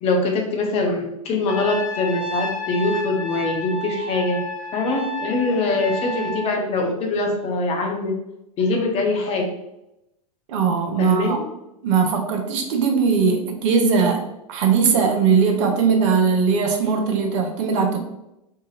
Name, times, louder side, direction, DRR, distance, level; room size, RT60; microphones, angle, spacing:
voice 1, 0.0-4.4 4.7-8.1 8.6-9.5 11.0-11.4, left 3 dB, 30° left, 2 dB, 0.7 m, -23 dB
Trumpet, 1.5-6.5, equal, 60° left, 0.7 m, -31 dB
voice 2, 10.5-11.4 11.8-18.0, right 5 dB, 55° right, 3 dB, 0.6 m, -20 dB
2.8 x 2.7 x 2.4 m, 0.86 s
hypercardioid pair, 100°, 19 cm